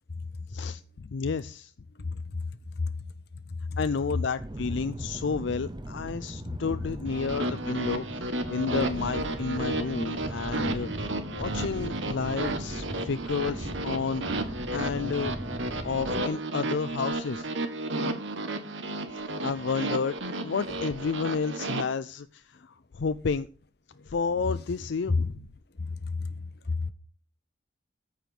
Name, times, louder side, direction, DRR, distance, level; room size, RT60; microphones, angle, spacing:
voice 1, 0.5-1.7 3.8-8.2 8.5-14.2 14.7-15.3 15.8-17.5 19.1-20.2 20.4-23.5 24.1-25.4, left 5 dB, 70° left, 0.5 m, -31 dB
voice 2, 2.0-2.4 2.8-2.9 3.5-3.8 6.5-6.6 24.5-24.6 25.1-25.3 25.8-26.3 26.7-26.9, left 3 dB, 55° left, 0.9 m, -30 dB
sound 1, 4.4-16.2, right 1 dB, 20° right, 0.7 m, -38 dB
sound 2, 7.1-21.8, right 2 dB, 75° right, 1.6 m, -33 dB
14.0 x 5.1 x 5.9 m
head